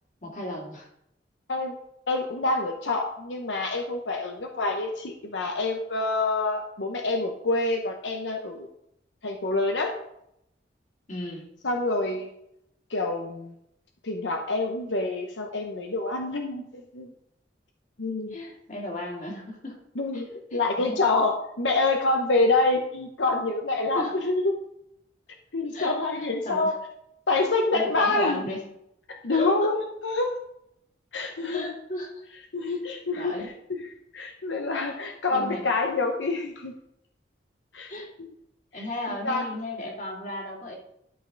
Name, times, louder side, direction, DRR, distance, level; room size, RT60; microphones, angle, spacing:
voice 1, 0.2-0.9 11.1-11.4 18.3-19.8 20.1-20.2 20.5-21.0 23.9-24.2 25.7-26.8 27.7-28.7 29.3-29.7 31.5-32.2 32.7-32.8 33.1-33.5 34.9-35.0 35.3-35.7 37.9-38.1 38.7-40.7, left 1 dB, 45° left, -1 dB, 2.5 m, -35 dB
voice 2, 2.1-8.7 9.2-9.9 11.6-12.3 12.9-13.5 14.0-17.1 18.0-18.3 20.0-24.5 25.5-26.7 27.3-28.4 29.1-29.8 30.0-30.4 31.1-31.7 32.5-33.3 34.1-36.7 37.7-37.9 39.2-39.5, left 3 dB, 85° left, 3 dB, 0.9 m, -26 dB
12.5 x 5.6 x 3.9 m, 0.77 s
head